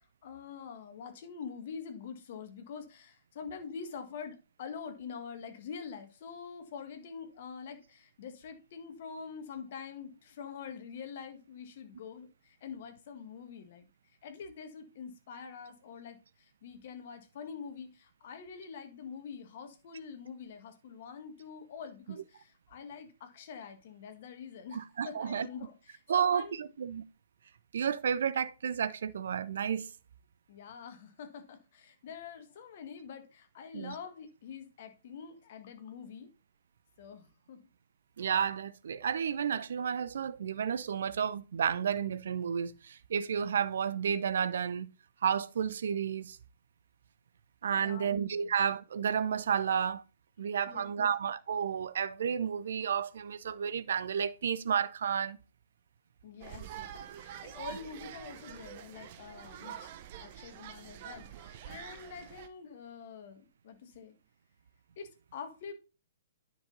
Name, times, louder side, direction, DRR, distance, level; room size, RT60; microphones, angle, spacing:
voice 1, 0.0-13.9 14.2-26.6 30.5-36.3 37.0-37.7 47.8-48.5 50.7-51.1 56.2-59.9 60.2-64.1 65.0-65.7, left 6 dB, 45° left, 1.7 m, -46 dB
voice 2, 24.7-25.5 26.1-27.0 27.7-29.9 33.7-34.0 38.2-44.9 45.2-46.4 47.6-50.0 50.4-55.4, right 7 dB, 55° right, 0.6 m, -31 dB
sound 1, 56.4-62.5, right 10 dB, 40° right, 0.9 m, -46 dB
9.7 x 6.2 x 4.0 m
figure-of-eight pair, 120°, 0 cm